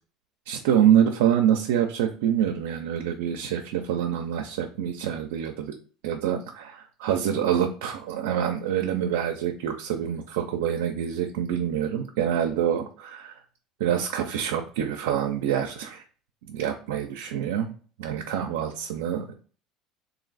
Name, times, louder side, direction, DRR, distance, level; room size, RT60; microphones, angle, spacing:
voice 1, 0.5-5.7 6.0-13.4 13.8-16.0 16.4-17.7 18.0-19.3, right 9 dB, 90° right, 3 dB, 0.4 m, -26 dB
3.2 x 2.6 x 3.9 m, 0.41 s
supercardioid pair, 110°, 0 cm